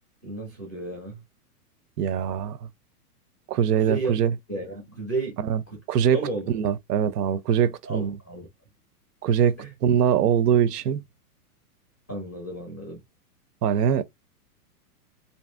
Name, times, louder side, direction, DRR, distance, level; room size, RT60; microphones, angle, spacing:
voice 1, 0.2-1.2 3.8-4.2 4.5-5.4 5.7-5.8 6.1-6.5 7.8-8.5 9.6-9.7 12.1-13.0, right 2 dB, 10° left, 0.4 m, -32 dB
voice 2, 2.0-2.6 3.5-4.3 5.4-5.6 5.9-6.2 6.5-8.2 9.2-11.0 13.6-14.0, right 8 dB, 90° right, 0.6 m, -22 dB
2.8 x 2.6 x 2.3 m
supercardioid pair, 175°, 46 cm